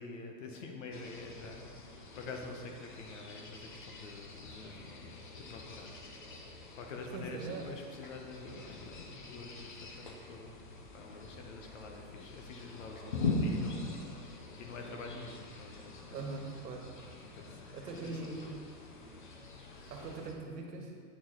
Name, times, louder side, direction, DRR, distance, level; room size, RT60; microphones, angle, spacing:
voice 1, 0.0-6.1 6.4-16.2 17.2-18.4 18.8-19.0 19.2-20.1, left 3 dB, 50° left, 3 dB, 1.0 m, -48 dB
sound 1, 0.9-20.3, left 3 dB, 35° left, 0.4 m, -43 dB
voice 2, 7.1-7.7 16.1-16.8 17.7-18.5 19.9-20.9, right 3 dB, 75° right, 1 dB, 1.5 m, -41 dB
8.6 x 6.1 x 3.9 m, 2.2 s
supercardioid pair, 175°, 50 cm